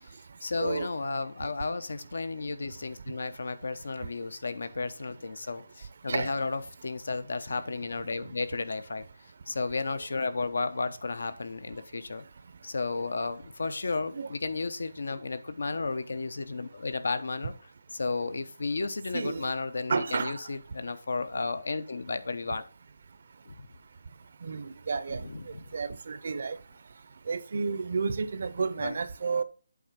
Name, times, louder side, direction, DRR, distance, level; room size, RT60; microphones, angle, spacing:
voice 1, 0.0-9.1 9.5-12.2 12.6-17.5 17.9-22.6 23.5-23.7 25.2-25.6 28.8-28.9, left 3 dB, 70° left, 0.8 m, -33 dB
voice 2, 19.9-20.3 24.4-25.2 25.7-26.6 27.3-29.4, right 5 dB, 50° right, 0.6 m, -31 dB
8.4 x 3.5 x 5.7 m
hypercardioid pair, 170°, 0 cm